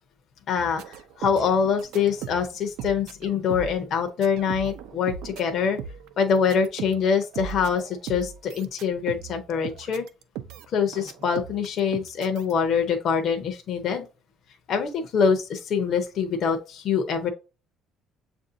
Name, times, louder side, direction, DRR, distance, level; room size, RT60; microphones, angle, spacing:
voice 1, 0.5-5.8 6.2-10.0 10.7-14.1 14.7-17.3, left 6 dB, 45° left, 4 dB, 0.7 m, -24 dB
sound 1, 0.6-3.8 4.1-10.7 10.9-12.5, right 7 dB, 80° right, 0.5 m, -38 dB
7.4 x 2.6 x 2.6 m, 0.31 s
cardioid pair, 160°, 0 cm